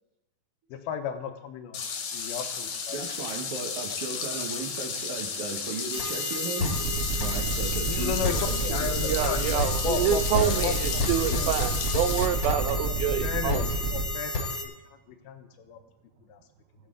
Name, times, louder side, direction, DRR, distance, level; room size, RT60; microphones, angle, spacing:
voice 1, 0.7-1.8 2.1-3.0 7.9-10.2 10.6-10.8 11.1-11.5 12.9-14.5 15.1-15.8 16.3-16.4, left 8 dB, 85° left, 7 dB, 2.7 m, -34 dB
sound 1, 1.7-12.3, left 6 dB, 65° left, 2.3 m, -34 dB
voice 2, 2.9-6.8 7.2-9.1 10.3-10.6 12.2-12.3, right 4 dB, 65° right, 1 dB, 1.4 m, -36 dB
sound 2, 5.9-14.6, left 2 dB, 40° left, 1.8 m, -31 dB
sound 3, 6.7-14.0, right 4 dB, 50° right, 2.0 m, -30 dB
voice 3, 9.1-13.6, right 10 dB, 85° right, 10 dB, 2.5 m, -27 dB
19.0 x 6.8 x 3.8 m, 0.97 s
omnidirectional pair, 4.2 m